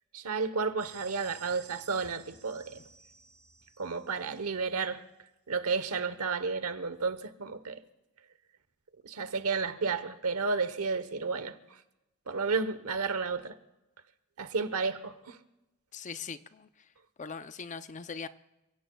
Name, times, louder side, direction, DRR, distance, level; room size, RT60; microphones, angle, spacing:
voice 1, 0.1-2.8 3.8-5.0 5.5-7.8 9.0-11.6 12.3-13.6 14.4-15.4, right 4 dB, 85° right, 1.0 m, -32 dB
sound 1, 0.8-4.5, right 6 dB, 70° right, 4.5 m, -54 dB
voice 2, 15.9-16.7 17.2-18.3, left 5 dB, 35° left, 0.5 m, -40 dB
29.0 x 16.5 x 2.3 m
head